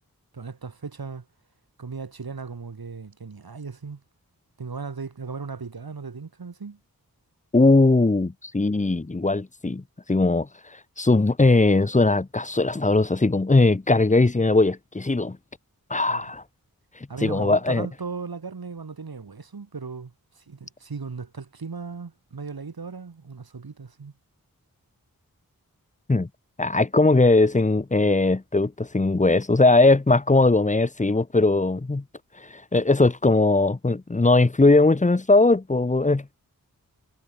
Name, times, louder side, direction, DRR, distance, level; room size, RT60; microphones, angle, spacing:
voice 1, 0.3-1.3 1.8-4.0 4.6-6.8 16.0-16.3 17.1-24.1, right 5 dB, 90° right, 4.7 m, -37 dB
voice 2, 7.5-9.8 10.1-10.5 11.0-15.4 15.9-16.4 17.2-17.9 26.1-26.3 26.6-32.0 32.4-36.3, left 2 dB, 20° left, 0.9 m, -19 dB
wide cardioid pair, 55°, 35 cm